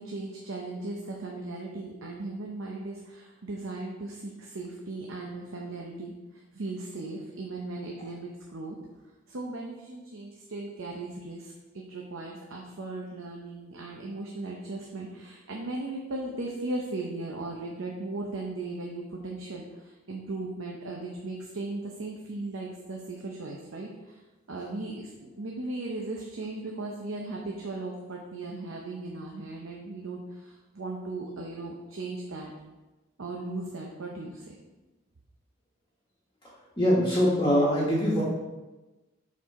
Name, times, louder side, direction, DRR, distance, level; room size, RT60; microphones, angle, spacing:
voice 1, 0.0-24.2 24.5-32.5 33.2-34.6, right 2 dB, 70° right, 0 dB, 0.7 m, -37 dB
voice 2, 36.8-38.2, equal, 20° left, -7 dB, 1.3 m, -23 dB
6.0 x 4.6 x 4.2 m, 1.1 s
head